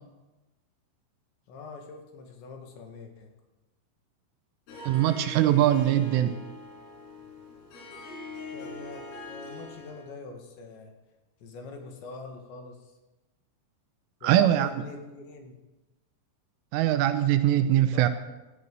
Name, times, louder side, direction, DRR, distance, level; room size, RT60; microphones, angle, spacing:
voice 1, 1.5-3.3 8.5-10.9 11.4-12.9 14.2-15.6 17.9-18.1, left 4 dB, 65° left, 3 dB, 3.9 m, -44 dB
Harp, 4.7-10.1, left 3 dB, 80° left, 6.8 m, -42 dB
voice 2, 4.9-6.4 14.2-14.7 16.7-18.1, right 12 dB, 80° right, 10 dB, 3.1 m, -22 dB
17.5 x 14.0 x 5.5 m, 1.1 s
omnidirectional pair, 6.0 m